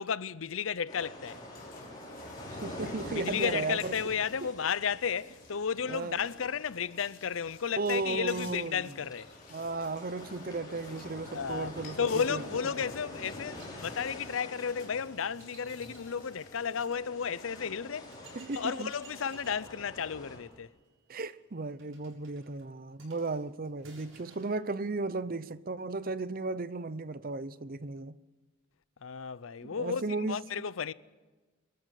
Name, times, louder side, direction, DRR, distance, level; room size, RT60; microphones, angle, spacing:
voice 1, 0.0-1.4 3.1-9.3 11.3-11.7 12.0-18.1 18.5-20.8 29.0-30.9, left 7 dB, 80° left, 0.6 m, -33 dB
sound 1, 0.9-20.4, left 1 dB, 20° left, 5.9 m, -47 dB
sound 2, 1.2-16.9, left 4 dB, 45° left, 3.8 m, -54 dB
voice 2, 2.4-3.9 4.4-4.5 5.9-6.2 7.8-8.9 9.5-12.4 18.3-18.9 21.1-28.2 29.6-30.4, right 3 dB, 45° right, 0.7 m, -35 dB
sound 3, 13.2-17.0 17.6-17.7 18.0-24.6, right 3 dB, 85° right, 6.9 m, -58 dB
23.5 x 14.0 x 9.3 m
head